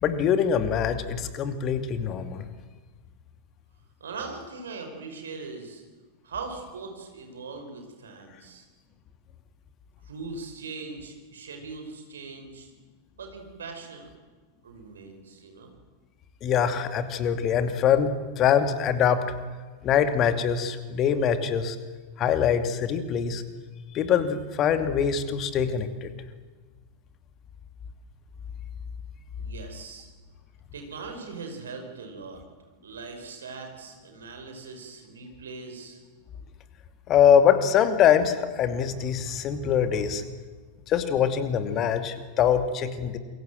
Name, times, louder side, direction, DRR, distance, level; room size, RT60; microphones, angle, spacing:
voice 1, 0.0-2.5 16.4-19.4 19.8-21.8 22.2-23.4 23.9-26.1 37.1-40.2 40.9-43.2, left 8 dB, 35° left, 9 dB, 2.6 m, -23 dB
voice 2, 4.0-5.8 6.2-8.7 10.0-12.7 13.2-14.1 14.6-15.7 29.4-30.1 30.7-32.4 32.8-36.0, right 4 dB, 65° right, 4 dB, 5.6 m, -40 dB
28.5 x 23.0 x 7.9 m, 1.4 s
figure-of-eight pair, 90°, 0 cm